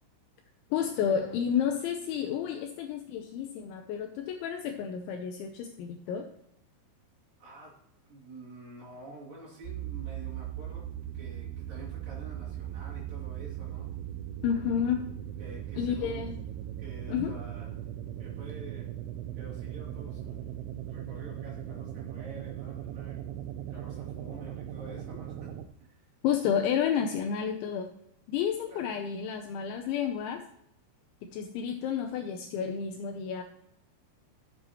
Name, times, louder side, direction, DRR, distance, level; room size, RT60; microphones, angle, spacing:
voice 1, 0.7-6.3 14.4-15.1 15.8-16.3 17.1-17.3 26.2-27.9 28.3-30.4 31.2-33.4, left 8 dB, 80° left, 5 dB, 2.7 m, -31 dB
voice 2, 7.4-7.7 8.1-10.8 11.1-13.9 15.4-16.3 16.8-17.9 18.2-18.9 19.4-20.6 20.9-23.2 23.7-25.5 25.8-26.1 28.7-28.9, right 1 dB, 50° right, -5 dB, 4.0 m, -48 dB
sound 1, 9.6-25.7, right 11 dB, 85° right, 3.2 m, -39 dB
13.5 x 7.8 x 2.9 m, 0.76 s
omnidirectional pair, 5.9 m